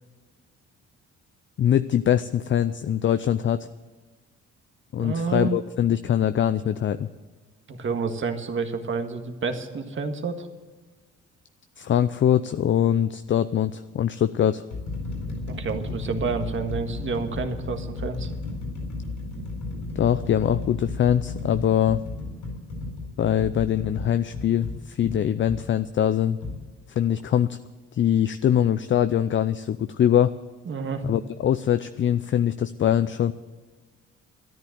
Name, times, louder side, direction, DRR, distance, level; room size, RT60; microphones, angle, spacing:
voice 1, 1.6-3.7 4.9-7.1 11.8-14.6 20.0-22.0 23.2-26.4 26.9-27.6 27.9-30.3 31.0-33.3, left 10 dB, 40° left, 12 dB, 0.5 m, -23 dB
voice 2, 5.0-5.6 7.7-10.5 15.5-18.3 30.6-31.0, right 4 dB, 40° right, 6 dB, 1.7 m, -29 dB
sound 1, 12.4-12.7 13.5-13.7 14.3-25.6 26.4-26.6, left 2 dB, 85° left, 4.4 m, -34 dB
13.5 x 10.5 x 7.9 m, 1.4 s
cardioid pair, 90°, 29 cm